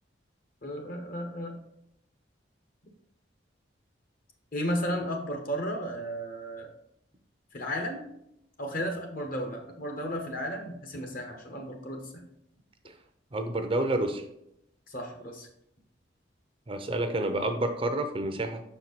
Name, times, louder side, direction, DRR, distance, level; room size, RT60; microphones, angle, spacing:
voice 1, 0.6-1.6 4.5-6.7 7.5-8.1 8.6-12.2 14.9-15.5, equal, 50° left, 3 dB, 1.2 m, -34 dB
voice 2, 13.3-14.3 16.7-18.6, right 1 dB, 30° right, 6 dB, 0.6 m, -29 dB
6.6 x 4.5 x 4.1 m, 0.79 s
head